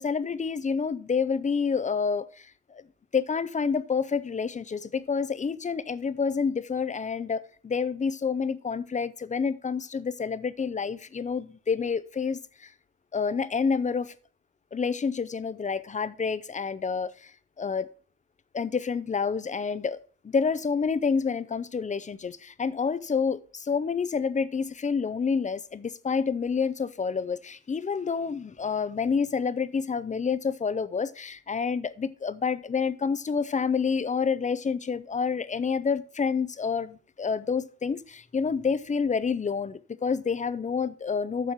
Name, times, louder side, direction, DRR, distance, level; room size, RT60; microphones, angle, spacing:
voice 1, 0.0-2.8 3.1-12.7 13.1-14.1 14.7-17.3 17.6-17.9 18.5-20.0 20.2-41.5, left 5 dB, 25° left, 0.6 m, -28 dB
7.5 x 6.3 x 5.7 m
cardioid pair, 90°, 30 cm